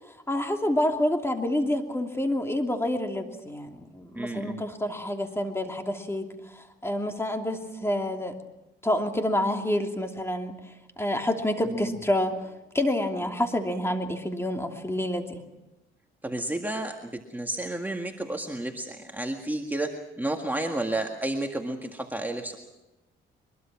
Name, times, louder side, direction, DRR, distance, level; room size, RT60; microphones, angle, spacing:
voice 1, 0.3-6.3 6.5-8.3 8.8-10.5 11.0-12.3 12.7-15.4, left 1 dB, 10° left, 4 dB, 2.9 m, -28 dB
voice 2, 4.2-4.6 11.6-12.0 16.2-19.9 20.2-22.6, right 1 dB, 10° right, 2 dB, 1.9 m, -31 dB
23.0 x 22.0 x 6.0 m, 0.97 s
cardioid pair, 90°, 20 cm